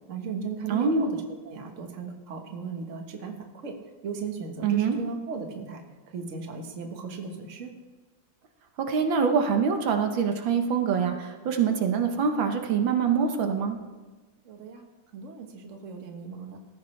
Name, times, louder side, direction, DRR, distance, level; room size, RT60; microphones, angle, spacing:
voice 1, 0.1-1.2 1.4-3.8 4.0-7.7 14.4-14.9 15.1-16.6, right 5 dB, 45° right, 3 dB, 1.5 m, -37 dB
voice 2, 0.7-1.0 4.6-5.0 8.8-13.8, right 6 dB, 80° right, 5 dB, 1.8 m, -24 dB
18.5 x 14.0 x 3.3 m, 1.3 s
omnidirectional pair, 2.1 m